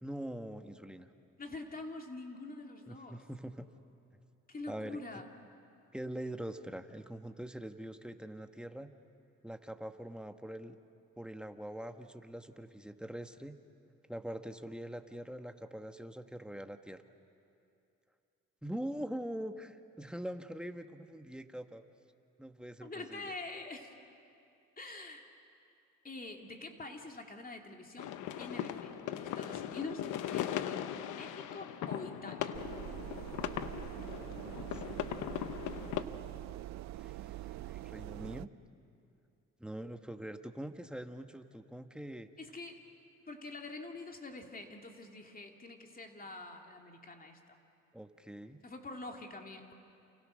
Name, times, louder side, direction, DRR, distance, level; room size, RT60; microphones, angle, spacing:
voice 1, 0.0-1.1 2.9-3.7 4.7-5.0 5.9-8.9 9.4-10.8 11.2-13.6 14.1-17.0 18.6-21.8 22.4-23.2 34.3-35.1 37.0-38.5 39.6-42.3 47.9-48.6, right 1 dB, 5° right, 7 dB, 1.3 m, -43 dB
voice 2, 1.4-3.2 4.5-5.3 22.8-23.9 24.8-25.3 26.0-28.1 28.4-28.9 29.2-32.5 42.4-42.8 43.3-47.6 48.6-49.7, left 2 dB, 30° left, 3 dB, 2.7 m, -45 dB
sound 1, 28.0-36.0, left 10 dB, 85° left, 1.1 m, -39 dB
sound 2, 32.5-38.5, right 14 dB, 65° right, 0.5 m, -44 dB
29.0 x 28.5 x 6.4 m, 2.6 s
cardioid pair, 90°, 30 cm